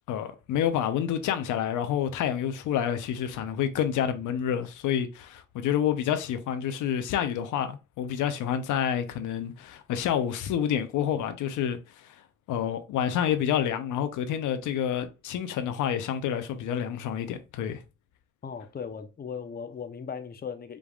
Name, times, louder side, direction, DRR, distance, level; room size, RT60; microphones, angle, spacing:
voice 1, 0.1-12.2 12.5-17.8, left 9 dB, 80° left, 0.7 m, -28 dB
voice 2, 18.4-20.8, left 6 dB, 30° left, 0.7 m, -37 dB
5.1 x 3.5 x 2.3 m
cardioid pair, 90°, 30 cm